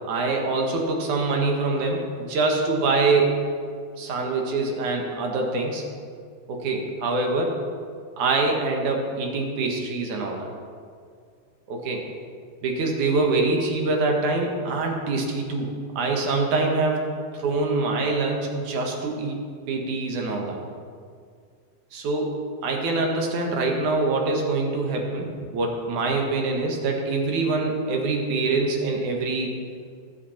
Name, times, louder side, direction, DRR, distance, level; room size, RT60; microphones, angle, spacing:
voice 1, 0.1-3.5 4.0-5.8 6.5-7.6 8.2-10.5 11.7-12.0 12.6-17.0 17.3-19.4 19.7-20.6 21.9-29.5, right 3 dB, 70° right, 1 dB, 2.9 m, -24 dB
21.0 x 8.4 x 4.4 m, 2.1 s
omnidirectional pair, 3.8 m